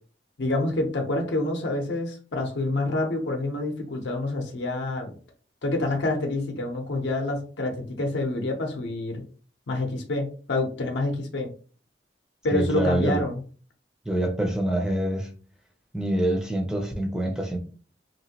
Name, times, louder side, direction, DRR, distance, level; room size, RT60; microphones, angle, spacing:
voice 1, 0.4-5.1 5.6-9.2 9.7-11.5 12.4-13.4, left 2 dB, 75° left, 3 dB, 0.6 m, -27 dB
voice 2, 12.5-13.2 14.1-15.3 15.9-17.6, right 1 dB, 5° right, 1 dB, 0.5 m, -25 dB
3.0 x 2.5 x 2.8 m, 0.40 s
head